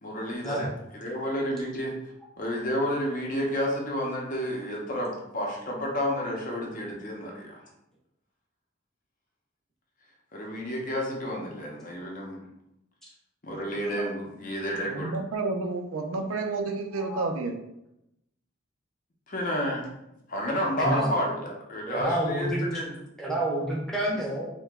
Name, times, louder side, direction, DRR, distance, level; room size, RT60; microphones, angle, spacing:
voice 1, 0.0-2.0 2.4-7.6 10.3-12.4 13.4-15.1 19.3-19.9 20.3-22.9, equal, 40° left, -1 dB, 0.7 m, -30 dB
voice 2, 13.5-13.9 14.9-17.5, right 3 dB, 85° right, 4 dB, 0.5 m, -31 dB
voice 3, 20.8-21.1 21.8-22.6 23.2-24.5, right 1 dB, ahead, -5 dB, 0.7 m, -28 dB
2.9 x 2.2 x 3.4 m, 0.85 s
head